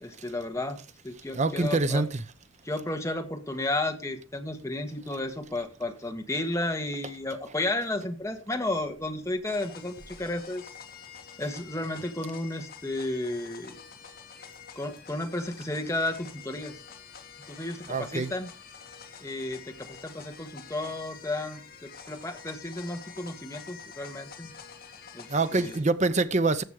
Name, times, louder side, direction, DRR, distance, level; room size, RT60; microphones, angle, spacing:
voice 1, 0.0-0.8 1.0-2.0 2.6-10.7 11.4-13.8 14.7-16.8 17.5-18.5 19.2-24.5 25.1-25.8, left 2 dB, 15° left, 1.6 m, -33 dB
voice 2, 1.3-2.2 17.9-18.3 25.3-26.6, right 3 dB, 35° right, 0.8 m, -25 dB
sound 1, 9.4-25.8, left 6 dB, 50° left, 1.9 m, -47 dB
14.5 x 6.2 x 4.9 m
head